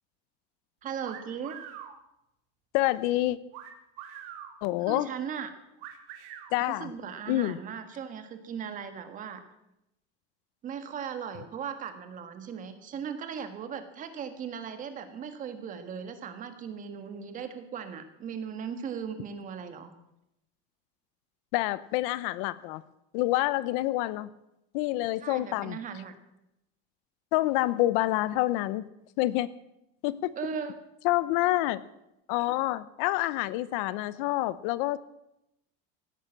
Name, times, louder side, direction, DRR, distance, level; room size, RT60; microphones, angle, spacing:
voice 1, 0.8-1.6 4.9-5.5 6.7-9.4 10.6-19.9 25.2-26.1 30.4-30.7, right 7 dB, 25° right, 8 dB, 1.6 m, -38 dB
sound 1, 1.0-1.9 3.5-4.5 5.8-6.5, right 10 dB, 70° right, 2.6 m, -43 dB
voice 2, 2.7-3.4 4.6-5.1 6.5-6.9 7.3-7.6 21.5-22.8 23.1-24.3 24.7-25.8 27.3-28.8 29.2-29.5 30.0-30.4 31.0-31.8 32.3-35.0, left 17 dB, 60° left, 18 dB, 0.7 m, -27 dB
17.0 x 9.8 x 7.5 m, 0.85 s
cardioid pair, 175°, 29 cm